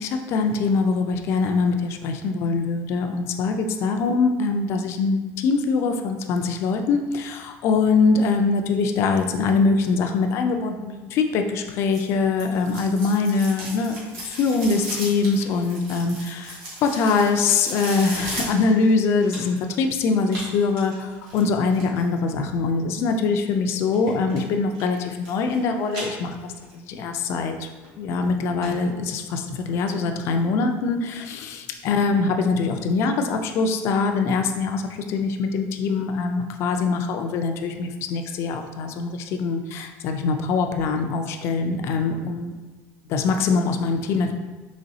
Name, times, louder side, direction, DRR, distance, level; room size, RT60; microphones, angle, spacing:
voice 1, 0.0-14.0 14.2-27.5 28.0-34.8 35.1-42.5 43.1-44.3, left 4 dB, 45° left, 5 dB, 0.4 m, -23 dB
sound 1, 11.9-19.7 20.3-22.0 23.9-24.4 24.7-25.6 25.9-26.7 27.1-27.2 27.8-27.9 28.2-28.3 28.6-28.7 29.1-29.2, right 1 dB, 60° right, 1.4 m, -36 dB
4.0 x 3.1 x 2.7 m, 1.2 s
cardioid pair, 160°, 6 cm